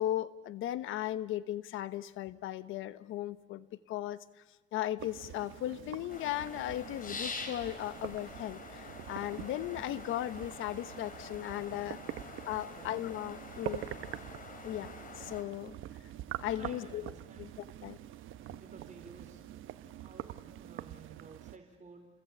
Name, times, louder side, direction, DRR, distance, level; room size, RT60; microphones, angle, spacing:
voice 1, 0.0-4.4 4.7-12.0 12.4-13.9 14.6-15.8 16.4-17.1 17.4-17.5 17.8-18.0, left 13 dB, 90° left, 14 dB, 1.2 m, -37 dB
sound 1, 5.0-21.6, right 12 dB, 85° right, 1.1 m, -45 dB
sound 2, 6.1-15.4, left 4 dB, 45° left, 4.7 m, -46 dB
voice 2, 16.5-17.5 18.5-22.1, right 4 dB, 40° right, 4 dB, 4.2 m, -55 dB
29.0 x 21.0 x 8.6 m, 1.2 s
cardioid pair, 90°, 20 cm